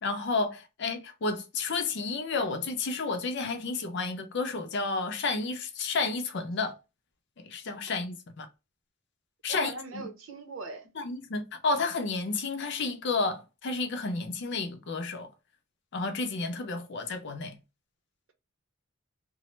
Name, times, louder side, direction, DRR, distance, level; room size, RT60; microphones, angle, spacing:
voice 1, 0.0-6.7 7.4-8.5 9.4-10.0 11.0-15.3 15.9-17.6, left 3 dB, 60° left, 0.5 m, -31 dB
voice 2, 9.5-10.9, right 3 dB, 85° right, 0.7 m, -40 dB
3.0 x 2.0 x 3.0 m
head